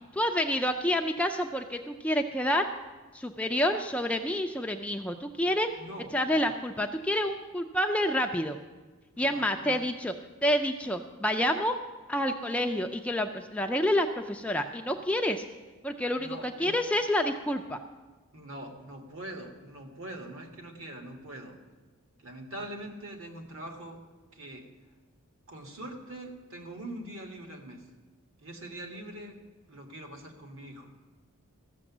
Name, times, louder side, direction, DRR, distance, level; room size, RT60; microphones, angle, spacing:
voice 1, 0.1-2.7 3.1-5.7 6.1-8.6 9.2-10.1 10.4-11.8 12.1-15.4 15.8-17.8, left 1 dB, 5° left, 4 dB, 0.4 m, -28 dB
voice 2, 5.8-6.6 9.1-9.8 16.1-16.7 18.3-21.5 22.2-24.0 24.3-24.6 25.5-27.8 28.4-29.4 29.7-30.9, right 1 dB, 60° right, 3 dB, 1.6 m, -43 dB
14.5 x 6.8 x 7.2 m, 1.3 s
head